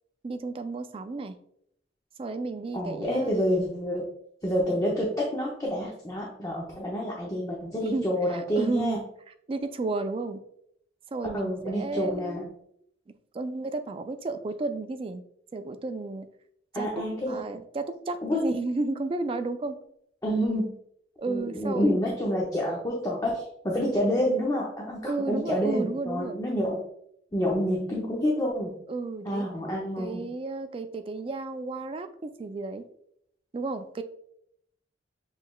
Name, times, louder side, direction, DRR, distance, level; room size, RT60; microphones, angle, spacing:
voice 1, 0.2-1.4 2.2-3.3 7.9-9.0 9.5-10.4 11.1-12.4 13.3-15.2 15.5-16.3 16.7-16.9 17.2-19.8 21.2-22.0 25.0-26.4 28.9-29.5 30.0-32.8 33.5-34.0, right 3 dB, 30° right, 9 dB, 0.3 m, -32 dB
voice 2, 2.7-4.1 4.4-9.0 11.3-12.5 16.7-17.4 18.2-18.4 20.2-20.7 21.3-26.8 27.3-28.8 29.2-30.3, equal, 20° left, -3 dB, 0.6 m, -28 dB
6.4 x 3.2 x 2.3 m, 0.71 s
head